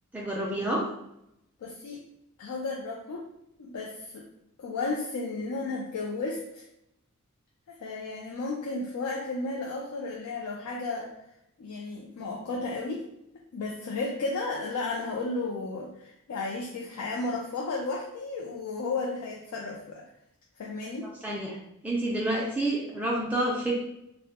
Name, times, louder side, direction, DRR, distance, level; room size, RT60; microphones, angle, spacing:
voice 1, 0.1-0.9 21.2-21.5 21.8-23.7, right 1 dB, 5° right, -4 dB, 0.3 m, -28 dB
voice 2, 1.6-2.0 2.4-3.2 3.6-4.3 4.6-6.6 7.7-11.1 11.6-13.1 13.5-20.0 20.6-21.1, left 3 dB, 80° left, -2 dB, 0.4 m, -33 dB
2.1 x 2.0 x 2.8 m, 0.82 s
head